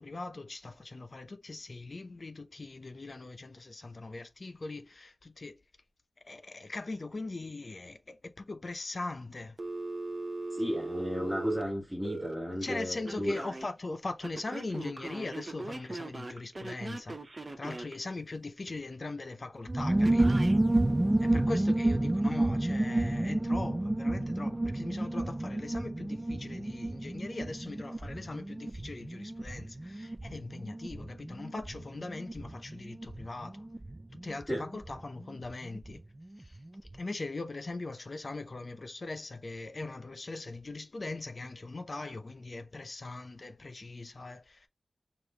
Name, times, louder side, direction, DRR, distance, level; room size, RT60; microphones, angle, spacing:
voice 1, 0.0-5.6 6.2-9.6 12.6-17.2 17.6-20.4 21.2-33.7 34.1-36.0 36.4-36.6 36.9-44.7, left 3 dB, 50° left, 0.6 m, -40 dB
Telephone, 9.6-12.3 13.1-13.7 14.2-18.0 20.0-20.6, right 2 dB, 40° right, 0.8 m, -39 dB
voice 2, 10.5-13.4 34.5-34.6, equal, 5° left, 1.5 m, -33 dB
sound 1, 19.7-36.0 36.2-36.3 36.5-37.0, right 1 dB, 25° right, 0.3 m, -31 dB
5.0 x 2.6 x 3.2 m
wide cardioid pair, 70°, 0 cm